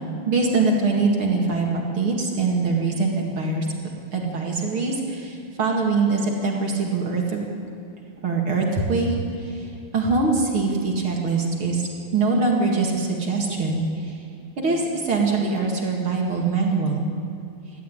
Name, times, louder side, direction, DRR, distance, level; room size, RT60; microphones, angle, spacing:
voice 1, 0.3-3.7 4.1-7.5 8.2-9.7 9.9-14.1 14.6-17.0, right 3 dB, 40° right, 0 dB, 2.5 m, -23 dB
20.0 x 14.5 x 8.9 m, 2.6 s
omnidirectional pair, 4.2 m